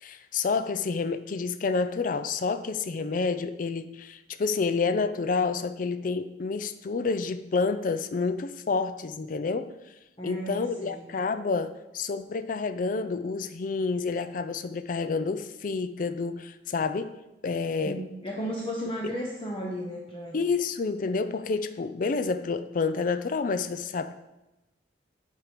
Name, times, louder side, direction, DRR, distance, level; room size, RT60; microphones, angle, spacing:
voice 1, 0.0-9.7 10.2-17.1 17.4-18.1 20.3-24.2, left 4 dB, 45° left, 12 dB, 0.4 m, -29 dB
voice 2, 10.2-11.0 17.8-20.4, equal, 30° left, -2 dB, 0.8 m, -34 dB
7.4 x 5.2 x 5.0 m, 0.99 s
head